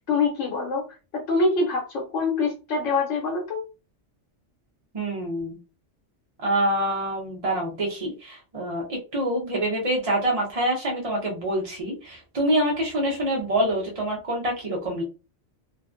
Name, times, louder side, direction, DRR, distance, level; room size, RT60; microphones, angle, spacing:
voice 1, 0.1-0.8 1.1-3.6, left 3 dB, 85° left, -1 dB, 1.0 m, -25 dB
voice 2, 4.9-5.6 6.4-15.0, right 1 dB, 40° right, -2 dB, 0.6 m, -26 dB
2.4 x 2.1 x 2.4 m, 0.31 s
omnidirectional pair, 1.2 m